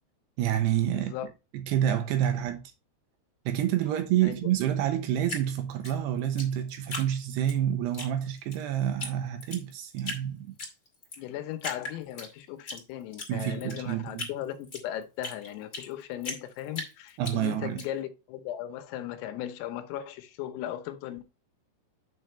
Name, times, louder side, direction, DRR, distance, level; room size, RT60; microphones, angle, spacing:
voice 1, 0.4-1.1 1.5-2.6 3.5-10.5 13.3-14.3 17.2-17.8, right 11 dB, 75° right, 2.6 m, -28 dB
voice 2, 0.9-1.3 4.2-4.4 11.2-21.2, left 12 dB, 85° left, 3.6 m, -37 dB
Drip, 5.2-7.6 7.9-8.6 9.0-9.1 9.4-10.2 10.6-11.2 11.6-12.8 13.1-15.9 16.2-17.8, left 2 dB, 70° left, 0.7 m, -38 dB
8.6 x 6.7 x 3.1 m
omnidirectional pair, 5.9 m